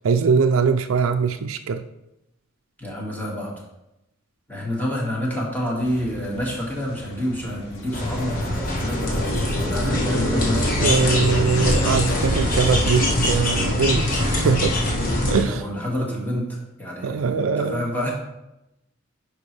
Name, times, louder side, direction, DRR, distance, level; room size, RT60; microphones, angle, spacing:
voice 1, 0.0-1.8 10.8-14.8 15.3-15.6 17.0-17.9, right 5 dB, 85° right, 0.4 m, -22 dB
voice 2, 2.8-3.6 4.5-11.2 15.4-18.1, equal, 10° left, 2.0 m, -28 dB
sound 1, 5.8-14.1, equal, 65° left, 1.8 m, -41 dB
sound 2, 6.8-12.3, left 3 dB, 85° left, 0.8 m, -36 dB
sound 3, 7.9-15.4, left 1 dB, 45° left, 1.3 m, -22 dB
10.5 x 4.8 x 3.3 m
head